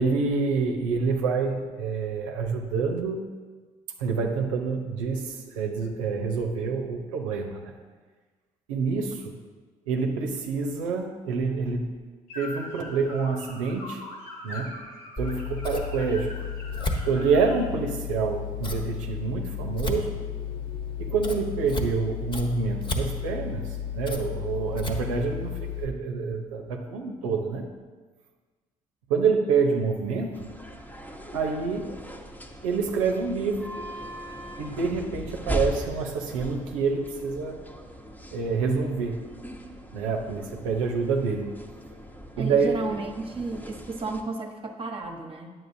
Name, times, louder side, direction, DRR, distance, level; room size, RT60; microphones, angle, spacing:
voice 1, 0.0-3.2 4.0-7.7 8.7-9.4 9.9-12.0 12.3-14.0 14.4-14.8 15.2-16.4 17.0-20.1 21.0-23.6 23.9-27.6 29.1-30.5 31.3-31.9 32.6-33.7 34.6-37.6 38.3-39.2 39.9-41.5 42.4-42.7, right 5 dB, 85° right, 3 dB, 0.8 m, -27 dB
sound 1, 12.3-17.6, left 2 dB, 75° left, 2.5 m, -41 dB
Scissors, 15.2-25.9, left 5 dB, 30° left, 1.2 m, -32 dB
sound 2, 30.3-44.2, equal, 10° left, 1.0 m, -39 dB
voice 2, 42.4-45.5, right 3 dB, 35° right, 2 dB, 1.1 m, -33 dB
9.5 x 7.5 x 2.7 m, 1.4 s
hypercardioid pair, 55°, 17 cm